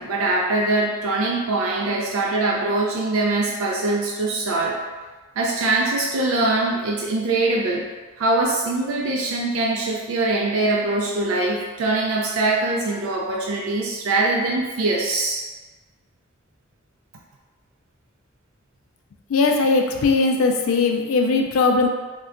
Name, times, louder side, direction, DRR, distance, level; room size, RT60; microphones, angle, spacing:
voice 1, 0.0-4.8 5.4-7.9 8.2-15.5, right 2 dB, 90° right, -2 dB, 0.4 m, -22 dB
voice 2, 19.3-21.9, left 4 dB, 80° left, 2 dB, 0.4 m, -19 dB
2.2 x 2.2 x 3.7 m, 1.3 s
head